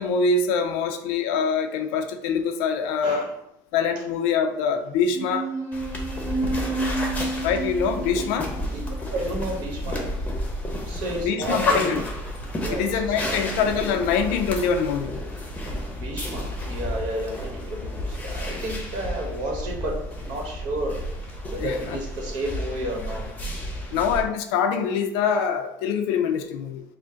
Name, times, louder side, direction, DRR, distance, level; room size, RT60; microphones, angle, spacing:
voice 1, 0.0-3.3 3.7-5.5 7.4-8.5 11.2-12.0 12.7-15.2 21.6-22.0 23.9-26.8, left 6 dB, 80° left, 7 dB, 0.5 m, -24 dB
sound 1, 5.1-10.1, right 2 dB, 35° right, 0.9 m, -31 dB
sound 2, 5.7-24.2, left 1 dB, 15° left, 0.8 m, -31 dB
voice 2, 9.1-10.2 10.9-11.9 12.6-13.6 15.9-23.3, right 1 dB, 60° right, 0 dB, 1.3 m, -32 dB
5.1 x 2.1 x 3.7 m, 0.84 s
supercardioid pair, 120°, 9 cm